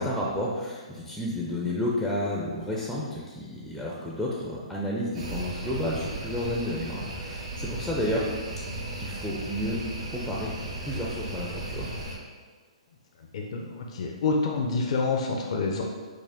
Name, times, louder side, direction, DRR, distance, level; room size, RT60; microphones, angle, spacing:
voice 1, 0.0-8.3 8.9-9.8 10.1-10.5 10.8-11.9, left 1 dB, ahead, -4 dB, 0.4 m, -31 dB
sound 1, 5.1-12.2, right 2 dB, 70° right, 1.3 m, -36 dB
voice 2, 13.3-15.8, left 4 dB, 55° left, 0 dB, 0.5 m, -27 dB
4.8 x 2.1 x 3.5 m, 1.5 s
hypercardioid pair, 135°, 4 cm